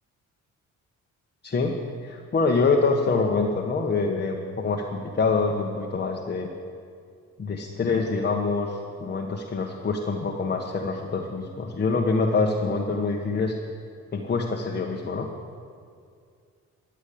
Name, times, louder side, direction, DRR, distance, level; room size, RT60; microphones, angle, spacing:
voice 1, 1.4-6.5 7.4-13.5 14.1-15.3, left 4 dB, 35° left, 1 dB, 1.4 m, -25 dB
14.0 x 9.4 x 8.7 m, 2.3 s
cardioid pair, 90°, 30 cm